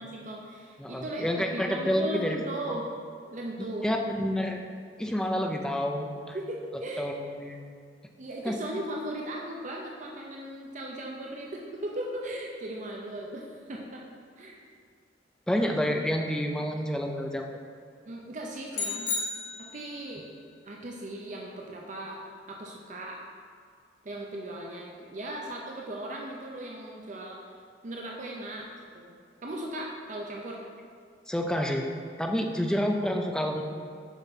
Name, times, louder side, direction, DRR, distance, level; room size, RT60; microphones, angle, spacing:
voice 1, 0.0-2.9 3.3-3.9 6.3-7.1 8.2-14.0 14.4-14.6 15.9-16.0 18.1-19.1 19.6-20.2 20.6-22.2 22.5-23.2 24.0-27.5 27.8-28.7 28.9-29.1 29.4-30.6, right 1 dB, 40° right, -1 dB, 0.6 m, -37 dB
voice 2, 0.8-2.4 3.6-4.6 5.0-6.4 7.0-7.6 8.4-8.5 15.5-17.5 31.3-31.9 32.2-33.6, equal, 5° left, 2 dB, 0.5 m, -29 dB
sound 1, 18.7-20.1, left 3 dB, 45° left, 0.9 m, -33 dB
7.1 x 5.6 x 4.1 m, 2.1 s
head